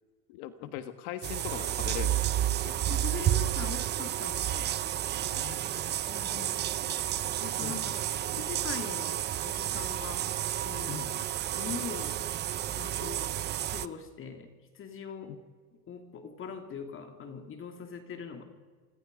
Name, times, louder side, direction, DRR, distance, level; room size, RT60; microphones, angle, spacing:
voice 1, 0.3-2.7 3.3-3.4 5.3-6.0 6.9-7.0 7.6-7.9 10.9-11.3 15.3-15.4, left 11 dB, 65° left, 10 dB, 1.7 m, -41 dB
sound 1, 1.2-13.9, right 12 dB, 25° right, 0.6 m, -31 dB
voice 2, 2.9-4.7 6.1-6.6 7.4-8.1 8.3-10.3 10.6-11.0 11.6-12.3 12.8-14.5 14.7-15.4 15.9-18.4, left 6 dB, 30° left, 6 dB, 2.6 m, -41 dB
27.0 x 25.5 x 5.2 m, 1.5 s
supercardioid pair, 135°, 39 cm